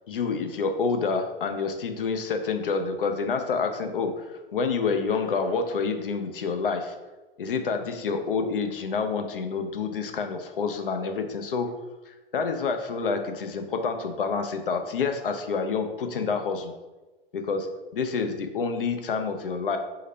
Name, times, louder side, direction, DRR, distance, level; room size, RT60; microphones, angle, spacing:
voice 1, 0.1-7.0 7.4-11.8 12.1-16.7 17.3-19.8, left 5 dB, 65° left, 6 dB, 0.6 m, -28 dB
3.8 x 2.7 x 4.3 m, 1.1 s
figure-of-eight pair, 100°, 29 cm